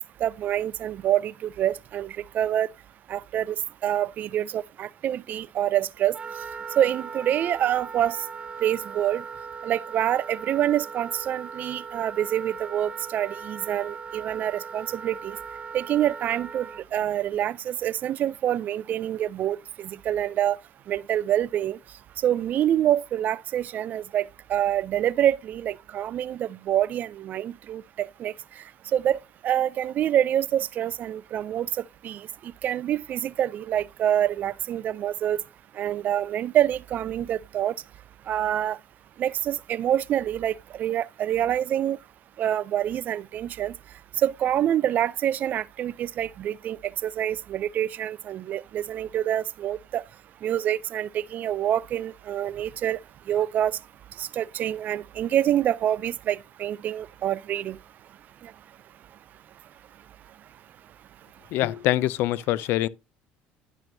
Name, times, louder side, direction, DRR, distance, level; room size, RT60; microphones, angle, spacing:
voice 1, 0.2-2.7 3.1-3.6 3.8-6.2 6.8-8.2 8.6-9.2 9.6-15.4 15.7-20.6 20.9-21.8 22.2-28.3 28.9-29.2 29.4-31.7 32.0-35.4 35.8-37.7 38.3-38.8 39.2-42.0 42.4-43.7 44.2-46.8 47.0-50.0 50.4-53.0 53.3-53.7 54.2-57.8, right 11 dB, 45° right, 0.3 m, -26 dB
Wind instrument woodwind instrument, 6.1-16.8, right 5 dB, 25° right, 0.7 m, -39 dB
voice 2, 61.5-62.9, left 15 dB, 65° left, 0.4 m, -24 dB
11.0 x 6.1 x 2.6 m
cardioid pair, 115°, 4 cm